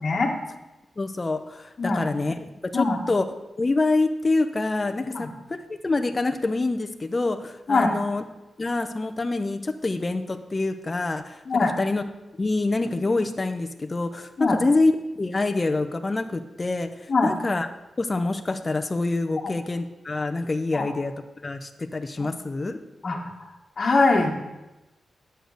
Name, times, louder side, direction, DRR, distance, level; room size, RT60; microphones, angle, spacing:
voice 1, 0.0-0.3 1.8-2.0 2.7-3.0 5.1-5.3 7.7-7.9 11.5-11.7 14.4-14.6 17.1-17.4 20.7-20.9 22.2-22.3 23.0-23.2 23.8-24.4, left 3 dB, 40° left, 0 dB, 1.5 m, -22 dB
voice 2, 1.0-3.2 3.6-5.3 5.7-8.3 8.6-12.0 12.4-14.9 15.2-17.7 18.0-21.1 21.4-22.8, left 3 dB, 25° left, 8 dB, 0.7 m, -26 dB
10.0 x 6.7 x 6.4 m, 1.0 s
wide cardioid pair, 145°, 0 cm